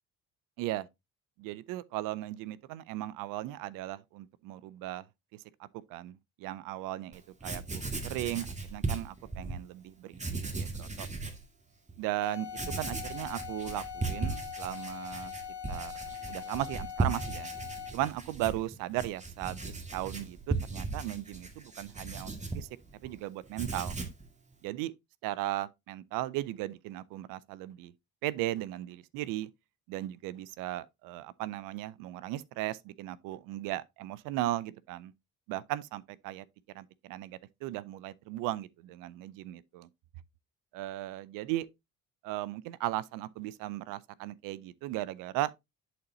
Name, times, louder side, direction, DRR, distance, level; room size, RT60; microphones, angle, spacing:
voice 1, 1.4-5.0 5.3-11.1 12.0-12.5 12.8-15.3 15.7-15.9 16.3-17.5 17.9-22.7 23.0-24.0 24.6-24.9 25.2-27.9 28.2-29.5 29.9-35.1 35.5-36.5 36.7-39.9 40.7-41.7 42.2-45.5, right 15 dB, 75° right, 0.5 m, -37 dB
Writing, 7.1-7.2 7.4-9.6 10.1-11.4 11.9-12.0 12.5-23.1 23.4-24.2, right 3 dB, 20° right, 1.8 m, -37 dB
sound 1, 12.2-18.1, left 8 dB, 65° left, 2.2 m, -42 dB
11.0 x 4.1 x 2.7 m
supercardioid pair, 65°, 33 cm